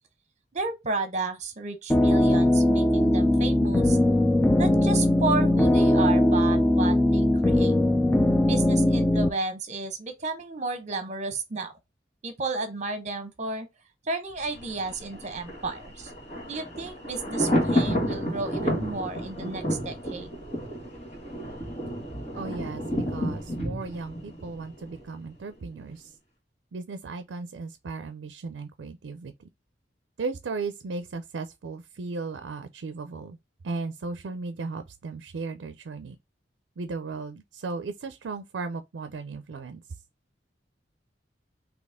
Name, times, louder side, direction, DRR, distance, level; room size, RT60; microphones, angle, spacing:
voice 1, 0.5-4.0 4.6-7.8 8.4-11.7 12.2-13.7 14.0-16.1 16.4-20.3, right 3 dB, 40° right, 0.9 m, -32 dB
sound 1, 1.9-9.3, left 1 dB, 10° left, 0.3 m, -20 dB
Thunder, 14.4-25.3 25.6-25.7, equal, 40° left, 1.8 m, -31 dB
voice 2, 22.3-26.1 26.7-29.3 30.2-33.4 33.6-36.2 36.8-39.8, right 4 dB, 80° right, 0.4 m, -36 dB
4.1 x 2.8 x 3.5 m
head